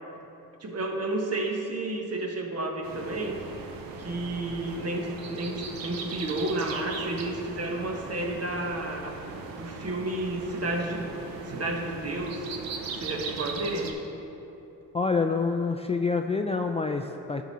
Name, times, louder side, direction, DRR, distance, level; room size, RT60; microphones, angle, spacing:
voice 1, 0.6-3.3 4.0-9.2 9.5-11.1 11.4-12.5 13.0-13.9, right 2 dB, 40° right, 2 dB, 1.3 m, -31 dB
sound 1, 2.8-13.9, right 4 dB, 70° right, 0.9 m, -39 dB
voice 2, 14.9-17.4, left 4 dB, 20° left, 4 dB, 0.4 m, -27 dB
11.0 x 4.8 x 4.2 m, 2.9 s
supercardioid pair, 60°, 37 cm